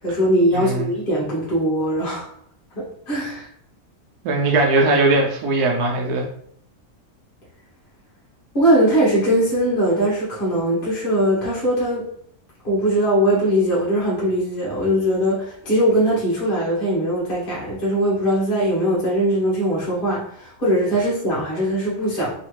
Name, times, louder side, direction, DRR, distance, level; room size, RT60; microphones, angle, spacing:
voice 1, 0.0-2.3 2.7-3.4 8.5-12.0 12.6-22.3, right 1 dB, 40° left, -7 dB, 1.3 m, -20 dB
voice 2, 0.5-0.9 4.2-6.3, right 2 dB, 80° right, 1 dB, 1.2 m, -19 dB
3.2 x 3.1 x 3.1 m, 0.65 s
omnidirectional pair, 1.6 m